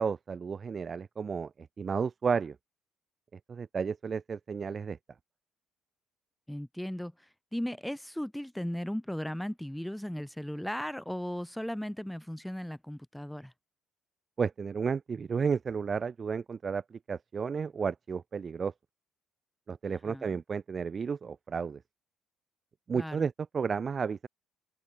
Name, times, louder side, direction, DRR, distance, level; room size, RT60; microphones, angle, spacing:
voice 1, 0.0-1.5 1.8-2.6 3.5-5.0 14.4-18.7 19.7-21.8 22.9-24.3, right 6 dB, 30° right, 0.6 m, -32 dB
voice 2, 6.5-13.5 20.0-20.2 22.9-23.3, equal, ahead, 1.9 m, -36 dB
open air
cardioid pair, 135°, 0 cm